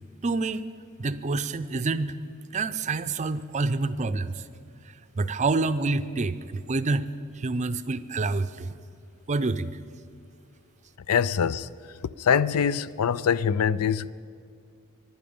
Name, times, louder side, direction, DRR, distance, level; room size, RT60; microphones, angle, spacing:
voice 1, 0.2-0.7 1.0-2.2 2.5-4.5 5.2-7.1 7.3-8.8 9.3-9.8, right 3 dB, 35° right, 0.5 m, -27 dB
voice 2, 11.1-11.7 12.2-14.1, left 7 dB, 85° left, 0.4 m, -24 dB
23.5 x 11.0 x 5.3 m
head